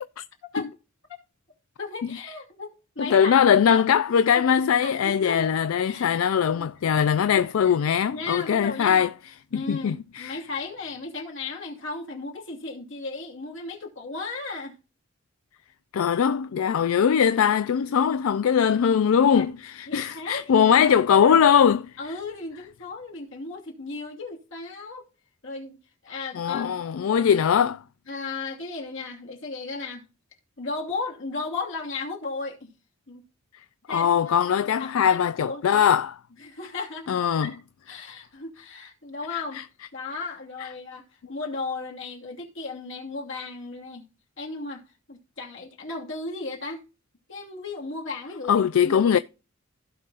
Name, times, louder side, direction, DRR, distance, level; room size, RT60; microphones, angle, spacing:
voice 1, 1.8-3.4 3.8-3.9 4.3-4.4 4.8-5.5 5.9-6.2 6.5-6.7 7.2-7.8 8.1-9.1 9.5-14.7 19.3-19.4 19.9-20.5 20.8-21.4 22.0-25.0 25.4-25.8 26.0-26.8 28.1-30.0 30.6-32.7 33.1-33.2 33.9-34.5 34.8-35.9 36.4-37.1 37.4-37.6 37.9-39.6 39.9-44.1 44.4-46.8 47.3-48.5 48.8-49.2, left 3 dB, 65° left, 2.6 m, -35 dB
voice 2, 3.0-9.1 9.5-10.4 15.9-21.9 26.3-27.8 33.9-36.1 37.1-37.5 39.3-39.6 40.6-40.7 48.5-49.2, left 8 dB, 85° left, 0.4 m, -21 dB
16.0 x 5.4 x 2.5 m
head